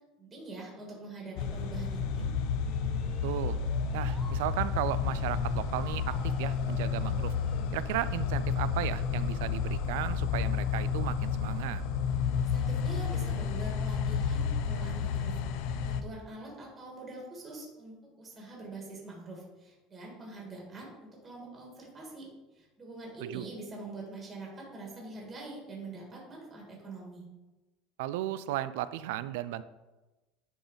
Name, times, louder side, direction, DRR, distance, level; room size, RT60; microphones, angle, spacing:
voice 1, 0.2-2.3 12.4-27.3, right 2 dB, 15° right, -2 dB, 1.6 m, -44 dB
sound 1, 1.4-16.0, left 6 dB, 60° left, 0.5 m, -31 dB
sound 2, 2.6-4.4 5.7-7.8, right 1 dB, 5° left, 0.9 m, -51 dB
voice 2, 3.2-3.6 3.9-7.3 7.7-11.8 23.2-23.5 28.0-29.6, right 14 dB, 90° right, 16 dB, 0.3 m, -35 dB
9.9 x 4.0 x 3.9 m, 1.1 s
cardioid pair, 170°, 0 cm